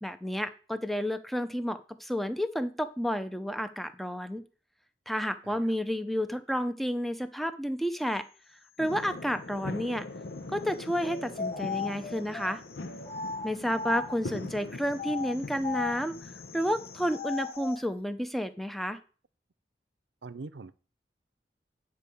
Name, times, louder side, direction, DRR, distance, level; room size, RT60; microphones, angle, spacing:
voice 1, 0.0-4.4 5.1-8.2 8.8-10.1 10.5-12.6 13.4-19.0, equal, ahead, 0.7 m, -31 dB
voice 2, 5.4-5.8 20.2-20.7, right 3 dB, 85° right, 0.6 m, -43 dB
sound 1, 8.8-17.2, left 2 dB, 80° left, 0.9 m, -42 dB
sound 2, 11.0-14.4 14.9-17.8, left 5 dB, 35° left, 1.2 m, -37 dB
9.5 x 4.6 x 6.9 m
head